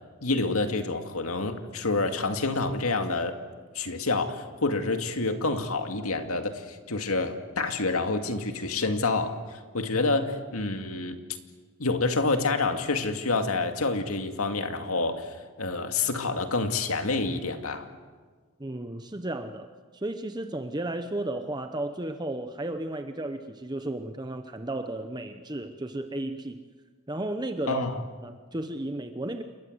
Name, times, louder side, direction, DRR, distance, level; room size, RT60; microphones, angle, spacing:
voice 1, 0.2-3.3 3.7-11.2 11.8-17.9 27.7-28.0, left 3 dB, 80° left, 6 dB, 2.2 m, -28 dB
voice 2, 18.6-19.7 19.9-26.6 27.1-27.9 28.2-29.4, right 1 dB, 20° right, 7 dB, 0.9 m, -33 dB
28.5 x 22.5 x 8.0 m, 1.5 s
head